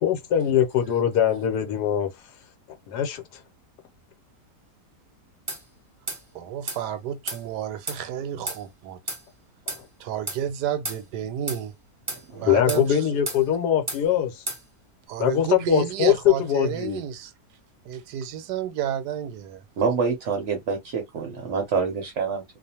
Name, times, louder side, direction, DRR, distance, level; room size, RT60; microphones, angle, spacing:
voice 1, 0.0-2.1 2.9-3.2 9.7-9.8 12.4-14.4 15.2-17.0, left 10 dB, 80° left, 1.2 m, -22 dB
sound 1, 5.5-5.6 6.1-6.2 6.7-6.8 7.3-7.4 7.9-8.0 8.5-8.6 9.1-9.2 9.7-9.8 10.3-10.4 10.8-11.0 11.5-11.6 12.1-12.2 12.7-12.9 13.3-13.4 13.9-14.0 14.5-14.6, right 2 dB, 25° right, 0.8 m, -32 dB
voice 2, 6.3-9.0 10.0-11.7 12.3-13.2 15.1-17.3 17.8-19.6, right 10 dB, 80° right, 1.2 m, -31 dB
voice 3, 12.1-12.7 19.8-22.4, right 5 dB, 60° right, 0.8 m, -27 dB
2.5 x 2.4 x 2.7 m
omnidirectional pair, 1.8 m